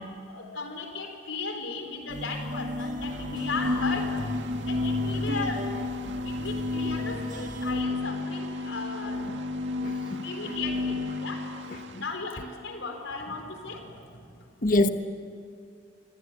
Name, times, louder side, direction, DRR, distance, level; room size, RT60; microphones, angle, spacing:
voice 1, 0.3-4.1 4.6-5.9 6.3-9.2 10.2-10.9 11.2-11.4 12.0-13.8, left 4 dB, 80° left, 4.3 m, -36 dB
sound 1, 2.1-7.8, equal, 40° right, 1.8 m, -35 dB
sound 2, 2.9-12.0, left 2 dB, 65° right, 2.0 m, -32 dB
voice 2, 9.8-10.5 11.9-12.0 14.6-14.9, left 2 dB, 45° left, 1.2 m, -26 dB
26.5 x 24.5 x 9.2 m
head